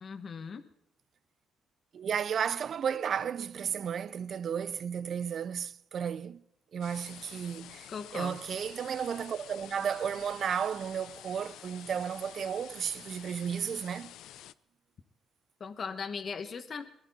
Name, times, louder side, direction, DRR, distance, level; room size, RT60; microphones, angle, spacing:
voice 1, 0.0-0.6 7.9-8.4 15.6-16.8, left 5 dB, 50° left, 1.1 m, -38 dB
voice 2, 1.9-6.4 6.7-14.1, right 7 dB, 55° right, 0.6 m, -33 dB
sound 1, 6.8-14.5, left 12 dB, 85° left, 0.5 m, -50 dB
21.5 x 12.0 x 4.1 m
cardioid pair, 90°, 0 cm